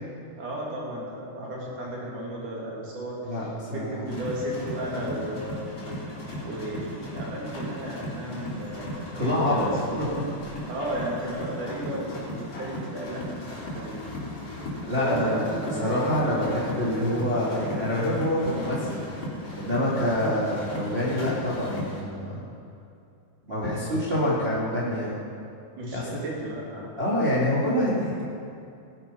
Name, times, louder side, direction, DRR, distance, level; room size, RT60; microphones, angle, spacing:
voice 1, 0.4-3.3 3.7-6.0 6.4-10.2 10.7-13.2 13.5-14.0 14.9-15.9 23.6-24.3 25.7-26.9, right 1 dB, 75° right, -4 dB, 4.5 m, -34 dB
voice 2, 3.2-4.0 9.1-10.2 14.9-19.0 19.6-22.4 23.5-25.2 25.9-26.2 27.0-28.2, left 1 dB, 20° right, -7 dB, 2.4 m, -26 dB
sound 1, 4.1-22.0, left 1 dB, 50° left, 4.6 m, -37 dB
19.0 x 10.5 x 5.6 m, 2.5 s
omnidirectional pair, 3.6 m